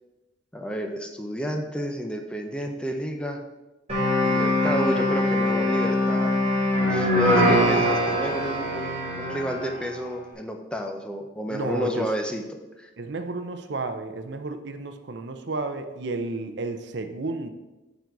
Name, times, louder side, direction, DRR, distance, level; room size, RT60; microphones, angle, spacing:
voice 1, 0.5-3.4 4.2-6.3 6.9-12.4 12.8-12.9, equal, 5° left, 3 dB, 0.5 m, -30 dB
sound 1, 3.9-9.8, left 1 dB, 35° right, 2.4 m, -23 dB
voice 2, 11.5-12.1 13.0-17.5, right 3 dB, 60° right, 8 dB, 0.6 m, -32 dB
9.0 x 4.0 x 4.7 m, 1.1 s
head